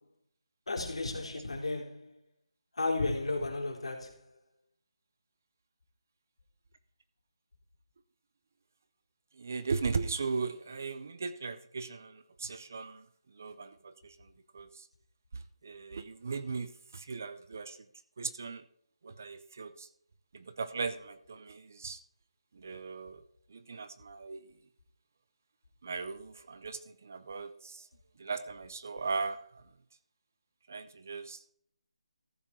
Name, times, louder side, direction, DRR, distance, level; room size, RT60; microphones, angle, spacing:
voice 1, 0.7-2.1 2.8-4.1, left 2 dB, 65° left, 3.4 m, -33 dB
voice 2, 9.4-13.0 13.4-14.1 14.5-14.8 15.6-17.8 18.2-18.6 19.0-19.9 20.3-22.0 22.6-23.2 23.5-24.4 25.8-27.9 28.2-29.4 30.7-31.4, right 4 dB, 25° right, 0.4 m, -38 dB
14.5 x 6.7 x 4.3 m
hypercardioid pair, 180°, 3 cm